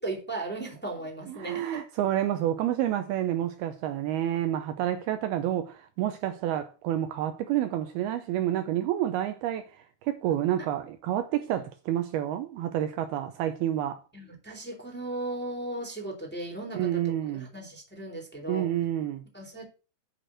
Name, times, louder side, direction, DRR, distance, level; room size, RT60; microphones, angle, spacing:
voice 1, 0.0-1.7 14.1-18.7 19.3-19.7, right 2 dB, 5° left, 2.7 m, -36 dB
voice 2, 1.3-9.7 10.0-14.0 16.7-17.5 18.5-19.2, right 12 dB, 80° right, 2.4 m, -29 dB
9.3 x 6.1 x 6.3 m
omnidirectional pair, 4.9 m